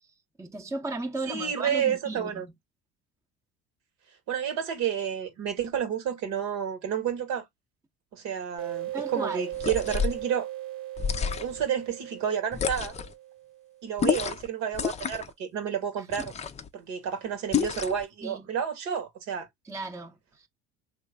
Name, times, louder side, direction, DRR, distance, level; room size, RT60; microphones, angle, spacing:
voice 1, 0.4-2.5 8.9-9.5 16.2-16.3 18.2-18.5 19.6-20.5, right 2 dB, 10° right, 0.7 m, -35 dB
voice 2, 1.3-2.5 4.3-7.4 8.1-10.5 11.4-12.9 13.8-16.3 16.7-19.5, right 8 dB, 65° right, 1.2 m, -30 dB
sound 1, 8.6-13.9, right 14 dB, 45° right, 0.7 m, -38 dB
sound 2, 9.5-10.2 11.0-11.7 12.5-13.1 14.0-14.5 14.7-15.3 16.1-16.7 17.5-18.0, left 7 dB, 20° left, 0.5 m, -29 dB
3.1 x 2.3 x 3.3 m
hypercardioid pair, 70°, 30 cm